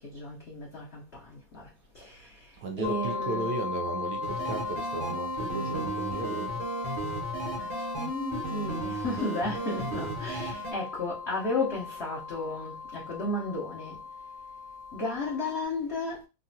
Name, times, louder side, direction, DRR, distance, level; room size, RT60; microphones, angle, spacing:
voice 1, 0.0-3.5 7.6-14.0 14.9-16.3, left 2 dB, 85° left, 0.5 m, -34 dB
voice 2, 2.6-6.7, right 3 dB, 70° right, 1.0 m, -35 dB
sound 1, 2.8-15.6, left 4 dB, 65° left, 1.2 m, -37 dB
sound 2, 4.2-10.7, right 3 dB, 90° right, 1.8 m, -36 dB
3.8 x 2.1 x 2.6 m
omnidirectional pair, 2.2 m